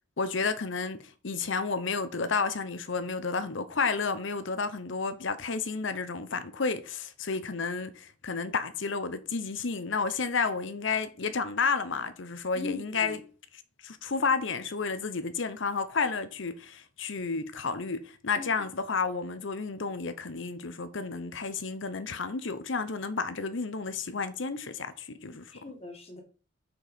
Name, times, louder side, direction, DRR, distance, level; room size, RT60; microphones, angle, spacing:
voice 1, 0.2-13.2 13.8-25.5, left 4 dB, 65° left, 0.8 m, -31 dB
voice 2, 12.6-13.2 18.4-18.5 25.5-26.2, left 3 dB, 30° left, 1.8 m, -39 dB
6.4 x 4.7 x 5.1 m
head